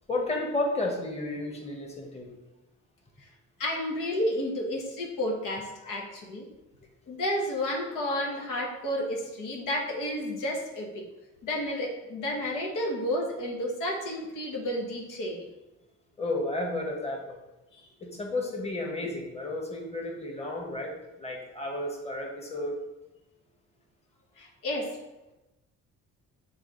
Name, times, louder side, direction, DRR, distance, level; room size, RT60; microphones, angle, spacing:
voice 1, 0.1-2.3 16.2-17.4 18.0-20.9 21.2-22.8, left 2 dB, 20° left, -1 dB, 1.6 m, -32 dB
voice 2, 3.6-6.5 7.1-10.9 11.4-15.5 17.7-17.9 24.4-24.9, left 1 dB, 80° left, -1 dB, 1.4 m, -31 dB
7.2 x 3.5 x 4.1 m, 1.0 s
cardioid pair, 80°, 31 cm